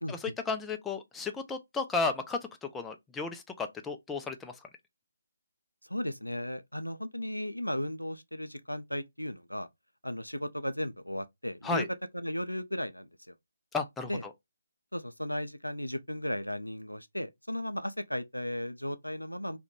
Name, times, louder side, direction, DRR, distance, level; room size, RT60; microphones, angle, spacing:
voice 1, 0.1-4.5 11.6-11.9 13.7-14.3, left 4 dB, 5° left, 0.3 m, -34 dB
voice 2, 5.8-9.7 10.0-11.9 12.1-13.3 14.1-14.2 14.9-19.6, left 1 dB, 90° left, 0.3 m, -35 dB
2.4 x 2.1 x 2.9 m
figure-of-eight pair, 145°, 0 cm